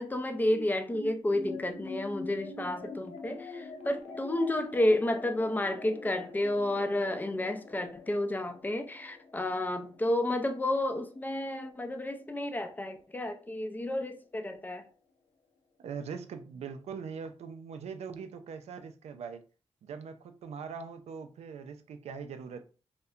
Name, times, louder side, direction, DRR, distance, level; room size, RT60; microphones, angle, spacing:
voice 1, 0.0-14.9, left 1 dB, 15° left, 0.4 m, -31 dB
sound 1, 0.5-13.1, left 3 dB, 75° left, 0.4 m, -46 dB
voice 2, 15.8-19.5 19.8-22.6, right 6 dB, 75° right, 0.4 m, -41 dB
2.7 x 2.1 x 2.3 m
cardioid pair, 60°, 11 cm